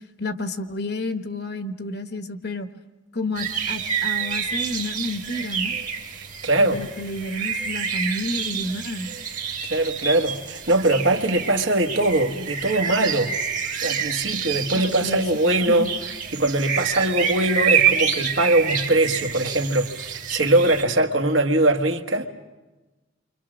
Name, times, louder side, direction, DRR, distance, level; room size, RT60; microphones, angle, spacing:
voice 1, 0.2-2.7 3.1-5.7 6.6-9.1 14.7-15.2 15.6-15.9, left 2 dB, 55° left, 1.3 m, -30 dB
sound 1, 3.4-20.8, right 7 dB, 40° right, 1.5 m, -28 dB
voice 2, 6.2-6.8 9.7-13.3 13.8-15.9 16.3-22.3, right 2 dB, 75° right, 1.6 m, -21 dB
29.0 x 25.0 x 6.2 m
head